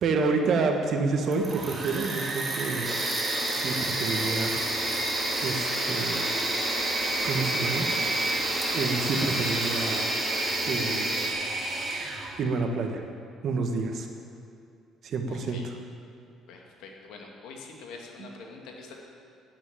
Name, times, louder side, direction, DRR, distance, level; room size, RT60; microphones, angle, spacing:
voice 1, 0.0-2.9 3.4-4.6 5.4-6.3 7.2-7.9 8.7-10.1 10.7-11.2 12.4-13.0 13.4-14.1 15.0-15.7 18.2-18.3, right 4 dB, 55° right, 4 dB, 1.7 m, -28 dB
Engine / Mechanisms, 1.2-12.4, right 2 dB, 40° right, 2.7 m, -32 dB
sound 1, 2.8-11.3, right 1 dB, 10° right, 3.9 m, -30 dB
voice 2, 15.3-15.7 16.5-19.0, left 4 dB, 70° left, 0 dB, 2.2 m, -45 dB
10.0 x 9.8 x 8.9 m, 2.5 s
hypercardioid pair, 55°, 0 cm